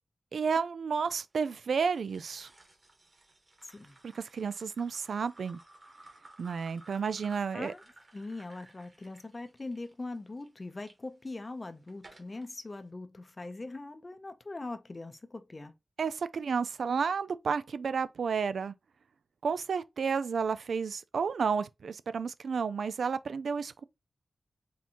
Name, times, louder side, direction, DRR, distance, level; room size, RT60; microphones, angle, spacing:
voice 1, 0.3-2.5 4.0-5.6 6.4-7.7 16.0-18.7 19.4-23.8, right 5 dB, 80° right, 0.3 m, -31 dB
sound 1, 1.8-11.0 11.5-12.5, right 2 dB, 30° right, 1.5 m, -58 dB
voice 2, 3.6-4.0 7.5-7.8 8.1-15.7, left 2 dB, 30° left, 0.6 m, -41 dB
4.2 x 3.6 x 2.8 m
wide cardioid pair, 150°, 0 cm